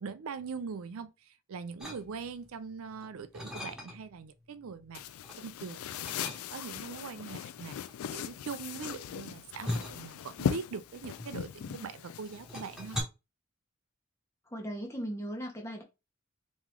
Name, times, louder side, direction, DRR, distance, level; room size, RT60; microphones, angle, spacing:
voice 1, 0.0-5.0 5.4-7.8 8.1-13.0, right 5 dB, 80° right, 0.5 m, -42 dB
sound 1, 1.8-2.5 2.9-4.2 4.6-5.4 6.0-6.9 7.7-11.8 12.1-13.0, left 1 dB, 5° right, 1.1 m, -40 dB
sound 2, 4.9-13.0, left 8 dB, 85° left, 0.3 m, -39 dB
voice 2, 14.5-15.8, equal, 15° left, 0.7 m, -38 dB
3.7 x 3.1 x 3.1 m
head